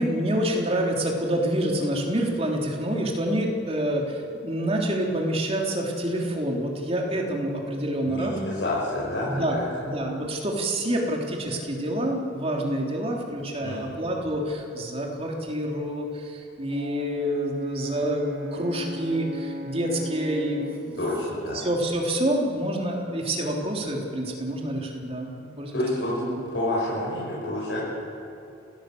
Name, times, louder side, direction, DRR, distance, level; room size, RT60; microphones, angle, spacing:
voice 1, 0.0-8.3 9.2-9.6 9.8-21.0 21.5-26.4, right 1 dB, 30° right, 0 dB, 3.4 m, -27 dB
voice 2, 8.0-9.6 13.6-13.9 20.9-21.6 25.7-26.1 26.5-27.8, left 1 dB, 70° left, -7 dB, 6.6 m, -28 dB
Brass instrument, 16.7-20.9, left 1 dB, 55° right, 2.5 m, -37 dB
29.5 x 16.5 x 7.9 m, 2.8 s
head